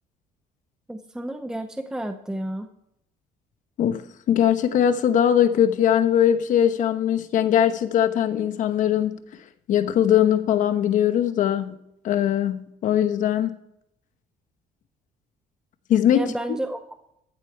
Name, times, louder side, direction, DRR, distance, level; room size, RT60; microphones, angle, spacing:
voice 1, 0.9-2.7 16.1-16.8, right 1 dB, 5° right, 0.7 m, -31 dB
voice 2, 3.8-9.2 9.7-11.8 12.0-13.6 15.9-16.3, left 10 dB, 60° left, 1.0 m, -21 dB
14.0 x 8.4 x 4.6 m
cardioid pair, 125°, 15 cm